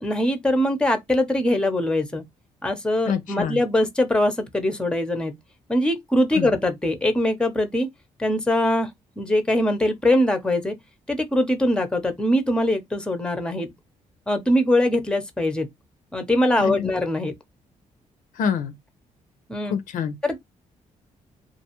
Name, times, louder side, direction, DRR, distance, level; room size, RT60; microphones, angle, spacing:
voice 1, 0.0-2.2 2.6-5.3 5.7-7.9 8.2-8.9 9.2-10.7 11.1-13.7 14.3-15.7 16.1-17.3 19.5-19.7 20.2-20.4, left 1 dB, 5° left, 0.6 m, -22 dB
voice 2, 3.1-3.6 6.3-6.5 16.6-16.9 18.4-18.7 19.7-20.1, left 7 dB, 75° left, 0.5 m, -26 dB
2.4 x 2.3 x 2.9 m
cardioid pair, 85°, 14 cm